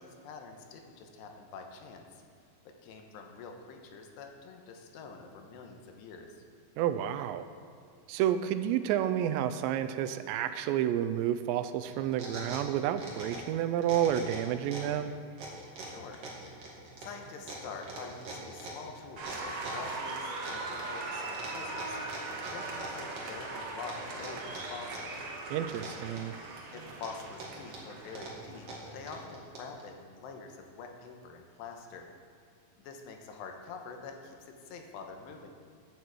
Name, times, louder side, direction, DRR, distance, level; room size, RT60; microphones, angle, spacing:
voice 1, 0.0-2.2 2.7-6.4 15.8-16.2 17.0-25.1 26.7-32.1 32.8-35.5, left 4 dB, 80° left, 3 dB, 3.0 m, -46 dB
voice 2, 6.8-7.5 8.1-15.1 25.5-26.3, right 11 dB, 85° right, 11 dB, 2.8 m, -30 dB
sound 1, 11.8-13.5 13.8-15.0 15.4-19.9 20.4-21.1 21.3-23.4 23.9-25.2 25.4-26.5 26.9-29.8, right 2 dB, 45° right, 2.3 m, -43 dB
Applause, 19.2-29.2, right 3 dB, 65° right, 1.4 m, -40 dB
14.0 x 9.1 x 4.7 m, 2.3 s
omnidirectional pair, 5.1 m